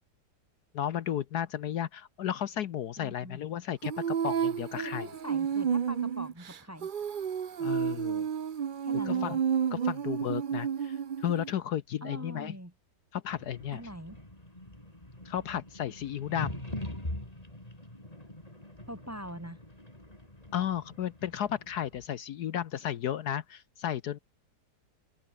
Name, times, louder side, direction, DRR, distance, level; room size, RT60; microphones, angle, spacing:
voice 1, 0.7-5.1 7.6-8.3 9.1-9.4 9.7-12.5 13.1-13.8 15.2-16.6 20.5-24.2, left 10 dB, 70° left, 1.3 m, -34 dB
voice 2, 3.0-3.4 4.7-6.9 8.8-9.4 12.0-12.7 13.7-14.2 18.9-19.6, equal, 10° right, 2.3 m, -42 dB
Female singing, 3.8-11.5, right 8 dB, 55° right, 0.5 m, -31 dB
sound 1, 13.3-22.1, left 1 dB, 20° left, 5.6 m, -43 dB
omnidirectional pair, 1.9 m